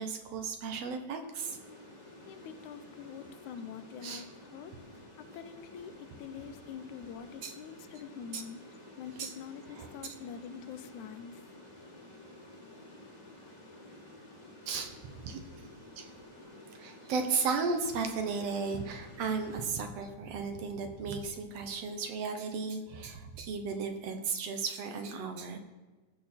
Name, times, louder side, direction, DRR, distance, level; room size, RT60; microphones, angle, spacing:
voice 1, 0.0-1.6 4.0-4.2 7.4-7.5 8.3-8.4 9.2-9.3 9.8-9.9 14.7-14.9 15.3-15.4 16.0-16.1 16.8-25.6, right 5 dB, 65° right, 6 dB, 1.9 m, -35 dB
sound 1, 1.4-19.6, left 1 dB, 15° left, 1.7 m, -52 dB
voice 2, 2.3-4.7 5.3-8.6 9.0-11.3, left 7 dB, 80° left, 11 dB, 2.1 m, -45 dB
16.0 x 6.5 x 4.3 m, 1.3 s
omnidirectional pair, 3.4 m